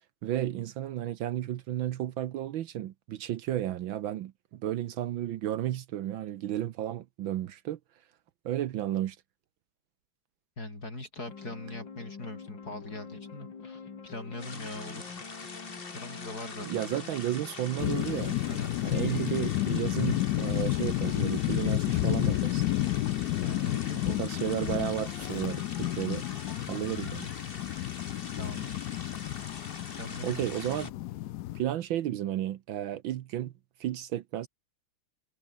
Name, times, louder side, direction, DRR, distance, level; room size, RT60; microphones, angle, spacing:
voice 1, 0.2-7.8 8.4-9.2 16.6-18.4 18.8-22.6 24.1-26.2 26.7-27.3 30.2-30.9 31.5-33.5 33.8-34.5, right 12 dB, 70° right, 1.5 m, -33 dB
voice 2, 10.6-15.2 15.9-17.1 18.5-18.8 23.4-24.4 28.4-28.9 30.0-30.5, left 2 dB, 45° left, 7.4 m, -42 dB
sound 1, 11.3-29.0, left 5 dB, 60° left, 3.3 m, -47 dB
sound 2, 14.4-30.9, left 4 dB, 25° left, 2.0 m, -44 dB
sound 3, 17.8-31.6, left 16 dB, 85° left, 0.8 m, -31 dB
omnidirectional pair, 2.3 m